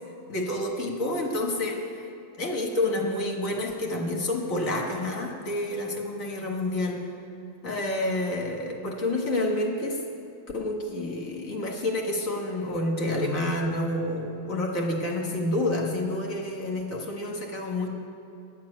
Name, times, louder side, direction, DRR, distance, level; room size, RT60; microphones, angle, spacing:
voice 1, 0.3-2.1 2.4-7.1 7.6-10.0 10.5-17.9, left 1 dB, 50° left, 0 dB, 1.9 m, -29 dB
12.0 x 7.5 x 9.9 m, 2.7 s
omnidirectional pair, 1.9 m